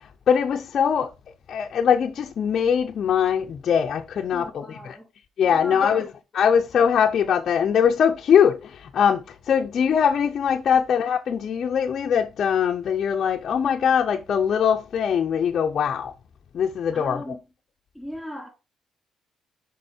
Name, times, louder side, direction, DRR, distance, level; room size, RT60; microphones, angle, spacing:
voice 1, 0.3-1.1 1.5-4.6 5.4-6.0 6.3-16.1 16.5-17.2, left 7 dB, 60° left, 0.6 m, -21 dB
voice 2, 4.3-5.1 5.4-6.1 10.7-10.9 16.9-17.4 17.9-18.5, equal, ahead, 4.0 m, -38 dB
5.5 x 5.4 x 4.4 m
cardioid pair, 90°, 0 cm